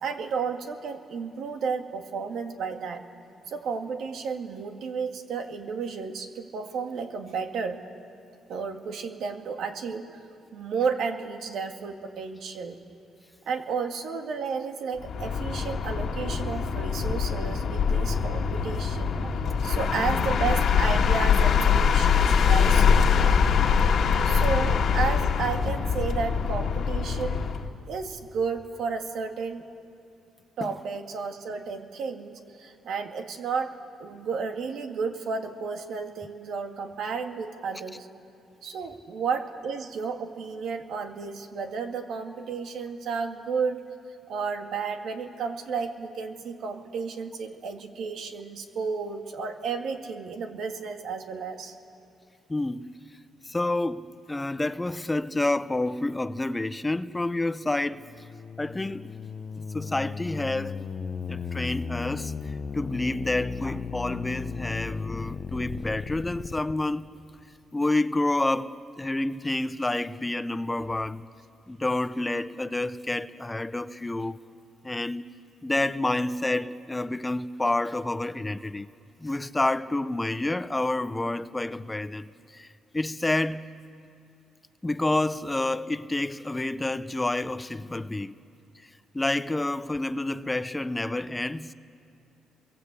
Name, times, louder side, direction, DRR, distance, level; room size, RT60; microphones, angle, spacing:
voice 1, 0.0-3.0 3.5-7.8 8.5-10.1 10.5-12.8 13.5-19.3 19.6-23.4 24.2-27.4 27.9-29.7 30.6-33.7 34.0-38.1 38.6-43.8 44.3-51.8, right 5 dB, 75° right, 2.0 m, -32 dB
sound 1, 15.0-27.7, left 6 dB, 60° left, 1.8 m, -23 dB
voice 2, 52.5-52.9 53.4-58.1 58.6-59.1 59.6-60.8 61.3-67.1 67.7-71.3 71.7-74.4 74.8-75.2 75.6-78.9 79.2-83.7 84.8-88.4 88.8-88.9 89.1-91.7, left 2 dB, 15° left, 0.7 m, -29 dB
sound 2, 57.9-66.7, left 5 dB, 45° left, 0.9 m, -35 dB
28.0 x 23.0 x 8.4 m
cardioid pair, 90°, 0 cm